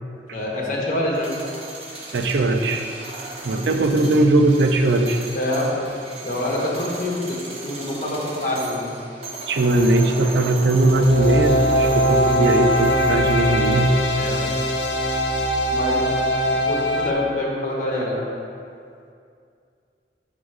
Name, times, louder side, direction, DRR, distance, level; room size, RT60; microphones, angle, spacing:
voice 1, 0.3-1.3 3.6-4.3 5.3-5.9 6.2-8.9 14.1-14.4 15.7-18.3, left 1 dB, 45° left, -4 dB, 1.3 m, -26 dB
sound 1, 1.0-15.2, right 2 dB, 35° right, 0.8 m, -37 dB
voice 2, 2.1-2.9 3.4-5.2 9.5-14.0, right 2 dB, 80° right, 6 dB, 0.5 m, -19 dB
sound 2, 10.9-17.1, equal, 80° left, 0.6 m, -21 dB
6.1 x 3.8 x 6.2 m, 2.4 s
head